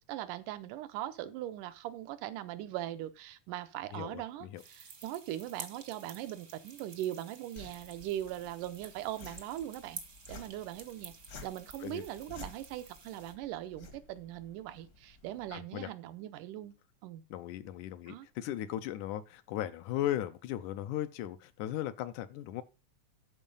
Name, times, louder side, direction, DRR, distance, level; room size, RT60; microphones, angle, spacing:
voice 1, 0.1-10.0 10.3-11.1 11.4-16.7 17.0-17.2 18.1-18.3, right 13 dB, 85° right, 2.3 m, -40 dB
voice 2, 3.9-4.6 11.8-12.0 15.5-15.9 17.3-22.6, left 12 dB, 85° left, 2.1 m, -37 dB
sound 1, 4.6-13.3, right 5 dB, 50° right, 0.8 m, -51 dB
sound 2, 7.6-15.6, left 4 dB, 50° left, 1.1 m, -53 dB
13.0 x 4.6 x 5.3 m
omnidirectional pair, 3.6 m